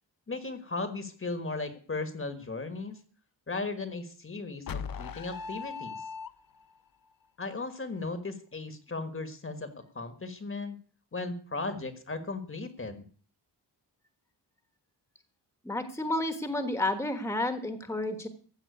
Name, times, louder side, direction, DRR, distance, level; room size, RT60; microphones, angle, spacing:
voice 1, 0.3-3.0 3.5-6.0 7.4-10.8 11.1-13.1, left 3 dB, 30° left, 9 dB, 1.5 m, -36 dB
sound 1, 4.7-6.8, left 5 dB, 55° left, 0.8 m, -38 dB
voice 2, 15.6-18.3, left 1 dB, 5° left, 8 dB, 1.4 m, -31 dB
15.0 x 6.1 x 9.2 m, 0.42 s
wide cardioid pair, 160°, 42 cm